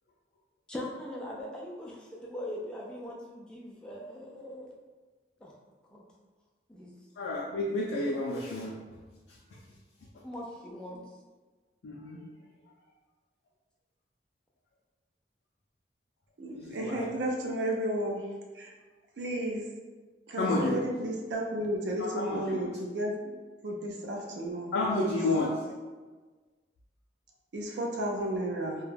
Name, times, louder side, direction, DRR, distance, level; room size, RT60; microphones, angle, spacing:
voice 1, 0.7-4.7 5.4-5.5 5.9-6.0 6.7-6.9 10.2-11.1, left 1 dB, 5° left, -4 dB, 0.3 m, -41 dB
voice 2, 7.2-8.7 11.8-12.2 16.5-17.0 20.4-20.8 22.0-22.7 24.7-25.5, left 2 dB, 90° left, -3 dB, 0.4 m, -30 dB
voice 3, 16.4-18.2 18.6-18.7 19.2-19.6 20.3-23.1 23.6-25.2 27.5-28.8, right 1 dB, 80° right, 0 dB, 0.4 m, -33 dB
2.2 x 2.1 x 3.2 m, 1.3 s
head